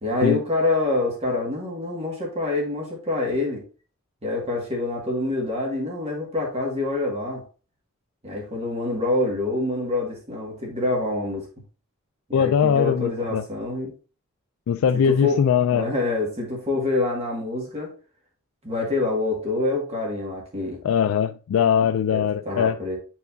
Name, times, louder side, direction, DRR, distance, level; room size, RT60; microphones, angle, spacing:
voice 1, 0.0-3.6 4.2-7.4 8.2-11.5 12.3-13.9 15.0-15.4 15.7-17.9 18.6-20.8 22.1-23.0, left 2 dB, 30° right, 1.9 m, -26 dB
voice 2, 12.3-13.4 14.7-15.9 20.8-22.8, left 7 dB, 80° left, 0.3 m, -21 dB
7.9 x 4.7 x 2.7 m
head